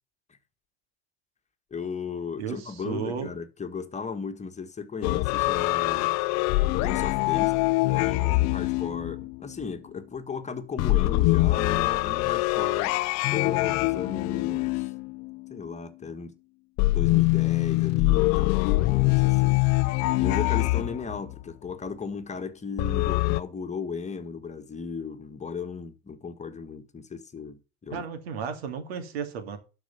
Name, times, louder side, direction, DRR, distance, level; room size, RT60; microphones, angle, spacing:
voice 1, 1.7-6.1 6.7-7.6 7.9-14.7 15.5-16.3 16.9-19.6 20.2-28.0, left 5 dB, 20° left, 1.6 m, -36 dB
voice 2, 2.4-3.3 27.9-29.6, right 6 dB, 80° right, 2.3 m, -33 dB
sound 1, 5.0-9.6 10.8-15.6 16.8-21.4 22.8-23.4, left 21 dB, 60° left, 0.7 m, -24 dB
12.0 x 4.9 x 6.7 m
hypercardioid pair, 95°, 31 cm